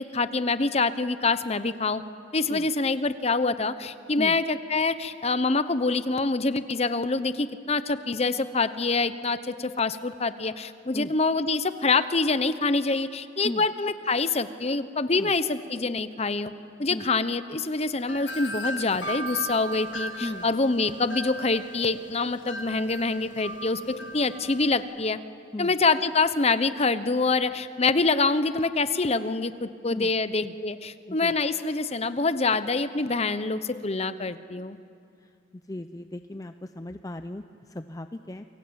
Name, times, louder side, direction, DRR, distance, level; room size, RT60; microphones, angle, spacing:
voice 1, 0.0-2.0 2.3-16.5 16.8-25.2 25.6-34.8, left 3 dB, 35° left, 12 dB, 0.9 m, -26 dB
Wind chime, 18.1-24.8, right 1 dB, 80° left, 1.8 m, -37 dB
voice 2, 35.2-38.5, left 1 dB, 20° left, 9 dB, 0.6 m, -37 dB
28.5 x 23.0 x 8.8 m, 2.4 s
head